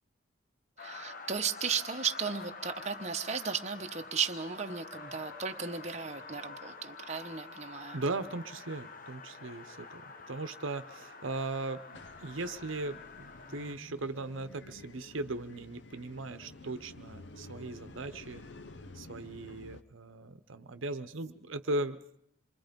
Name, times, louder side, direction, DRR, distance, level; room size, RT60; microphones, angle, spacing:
sound 1, 0.8-13.8, left 4 dB, 40° left, 1.3 m, -47 dB
voice 1, 0.8-8.0, right 6 dB, 35° right, 4 dB, 1.0 m, -35 dB
voice 2, 7.9-18.4 18.9-22.0, right 2 dB, 70° right, 11 dB, 0.9 m, -38 dB
sound 2, 11.9-19.8, left 2 dB, 55° left, 0.8 m, -51 dB
27.5 x 23.5 x 5.3 m, 0.73 s
head